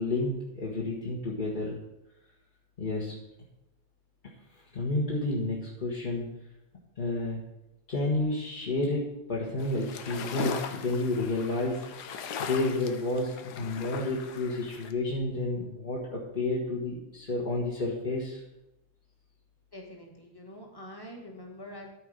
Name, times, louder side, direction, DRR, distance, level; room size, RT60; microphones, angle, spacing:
voice 1, 0.0-1.8 2.8-3.1 4.5-6.4 7.0-7.4 7.9-11.8 12.4-18.4, left 2 dB, 30° left, -5 dB, 1.4 m, -30 dB
sound 1, 9.6-14.9, left 6 dB, 75° left, 1.3 m, -39 dB
voice 2, 19.7-21.9, left 1 dB, 15° left, 0 dB, 1.5 m, -45 dB
13.0 x 4.4 x 5.2 m, 0.90 s
omnidirectional pair, 1.8 m